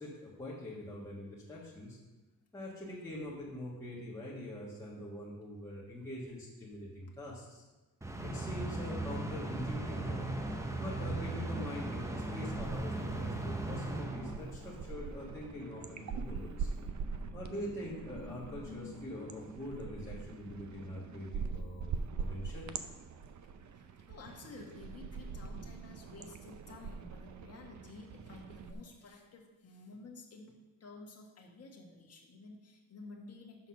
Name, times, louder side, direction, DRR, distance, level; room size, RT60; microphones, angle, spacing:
voice 1, 0.0-2.0 2.5-7.6 8.2-10.3 10.7-16.7 17.3-22.7, left 1 dB, 10° left, -7 dB, 1.4 m, -44 dB
sound 1, 8.0-14.8, right 2 dB, 10° right, 0.6 m, -37 dB
sound 2, 9.6-12.8 13.0-28.7, right 5 dB, 60° right, 0.6 m, -44 dB
sound 3, 14.4-23.2, left 3 dB, 30° left, 1.5 m, -53 dB
voice 2, 23.8-30.5 30.8-33.7, left 3 dB, 45° left, 0 dB, 1.5 m, -52 dB
7.0 x 5.9 x 5.8 m, 1.2 s
wide cardioid pair, 160°, 33 cm